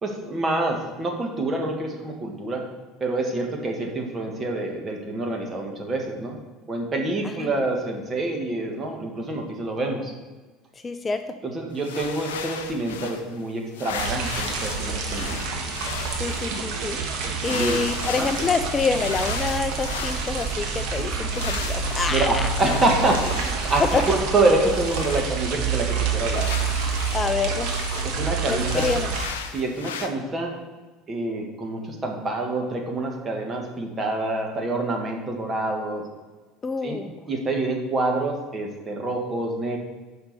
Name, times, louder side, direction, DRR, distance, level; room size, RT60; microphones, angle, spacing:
voice 1, 0.0-2.6 3.0-6.4 6.7-10.1 11.4-15.4 17.2-17.8 18.2-18.3 22.1-26.5 28.0-28.9 29.5-30.5 31.1-36.0 36.8-39.8, right 2 dB, 30° right, 1 dB, 1.8 m, -26 dB
voice 2, 10.8-11.2 16.2-17.0 17.4-22.5 23.9-24.0 27.1-27.7 28.5-29.1 36.6-37.1, left 4 dB, 25° left, 9 dB, 0.5 m, -27 dB
sound 1, 11.7-13.4 13.7-16.5 17.4-21.0 21.3-24.3 24.6-28.1 28.6-30.1, left 7 dB, 75° left, 0.6 m, -36 dB
sound 2, 14.0-29.3, right 5 dB, 60° right, 1.2 m, -28 dB
6.0 x 5.3 x 6.7 m, 1.3 s
figure-of-eight pair, 70°, 0 cm